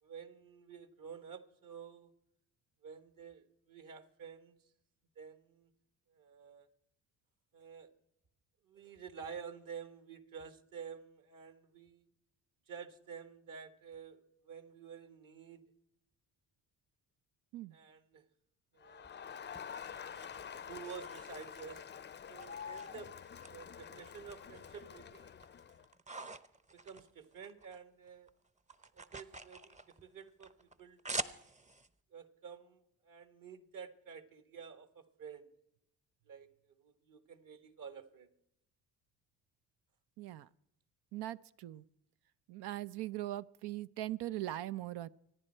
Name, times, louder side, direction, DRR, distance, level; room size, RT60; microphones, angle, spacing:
voice 1, 0.0-2.1 2.8-4.6 5.2-5.7 6.1-6.7 7.5-7.9 8.6-12.1 12.7-15.6 17.7-18.2 18.7-19.1 20.4-21.9 22.3-23.1 23.4-25.4 26.2-26.4 26.7-28.3 28.9-31.4 32.1-35.5 36.3-38.3, right 6 dB, 50° right, 9 dB, 1.8 m, -51 dB
Crowd, 18.8-25.8, left 7 dB, 25° left, 0.5 m, -48 dB
sound 1, 19.0-21.9 22.4-23.5 23.8-24.8 25.2-27.8 28.1-31.9, right 2 dB, 15° right, 0.8 m, -46 dB
voice 2, 40.2-40.5 41.1-41.8 42.5-45.1, right 14 dB, 75° right, 15 dB, 0.6 m, -40 dB
25.0 x 10.0 x 4.4 m, 0.81 s
supercardioid pair, 60°, 41 cm